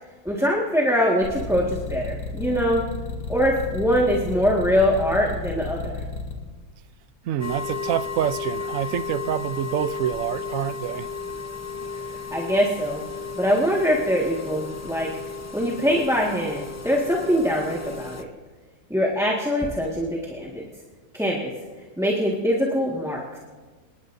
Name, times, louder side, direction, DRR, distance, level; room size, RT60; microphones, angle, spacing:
voice 1, 0.2-2.8 3.3-6.0 12.3-13.0 13.4-15.1 15.5-18.3 18.9-20.7 21.1-21.5 22.0-23.4, equal, ahead, -3 dB, 1.6 m, -23 dB
sound 1, 1.2-6.3, left 4 dB, 90° left, 2.9 m, -32 dB
voice 2, 7.2-11.1, right 10 dB, 65° right, 14 dB, 0.9 m, -27 dB
sound 2, 7.4-18.2, left 5 dB, 15° left, 0.5 m, -34 dB
28.0 x 19.5 x 2.7 m, 1.4 s
omnidirectional pair, 1.7 m